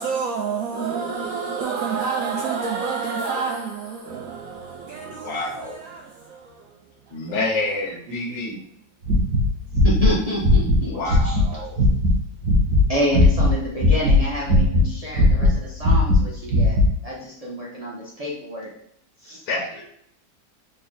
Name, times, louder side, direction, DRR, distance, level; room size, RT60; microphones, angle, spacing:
voice 1, 0.0-7.8 8.1-8.5 10.9-11.8, right 5 dB, 80° right, 0.7 m, -29 dB
voice 2, 5.0-5.8 7.1-8.6 10.9-11.9 19.5-19.8, left 3 dB, 65° left, 1.2 m, -29 dB
sound 1, 9.0-11.5 11.8-12.2 12.4-13.5 13.8-14.9 15.1-16.9, left 2 dB, 60° right, 1.1 m, -17 dB
voice 3, 9.8-11.4 12.9-16.8 17.0-18.7 19.2-19.4, equal, 45° right, 0.5 m, -28 dB
3.8 x 2.1 x 3.8 m
omnidirectional pair, 2.0 m